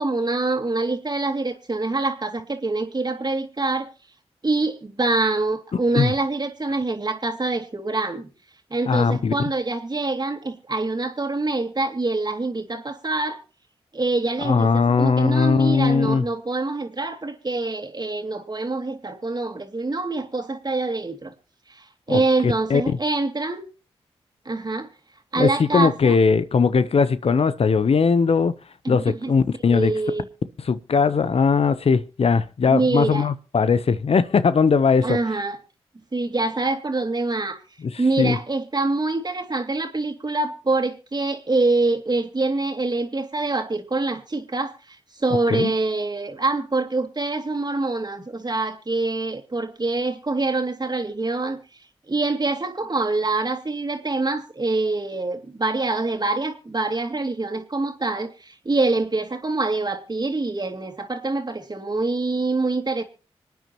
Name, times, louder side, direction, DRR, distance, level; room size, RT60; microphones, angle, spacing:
voice 1, 0.0-3.9 4.4-8.3 8.7-13.4 13.9-21.3 21.7-23.6 24.4-24.9 25.3-26.2 28.8-29.3 29.6-30.3 32.7-33.3 35.0-35.6 36.1-37.6 38.0-51.6 52.1-63.0, right 3 dB, 35° right, 2.5 m, -25 dB
voice 2, 8.9-9.3 14.4-16.2 22.1-23.0 25.4-28.5 28.9-29.9 30.6-35.2 37.8-38.4 45.5-45.7, left 5 dB, 60° left, 0.8 m, -19 dB
26.0 x 9.4 x 3.0 m
supercardioid pair, 40°, 11 cm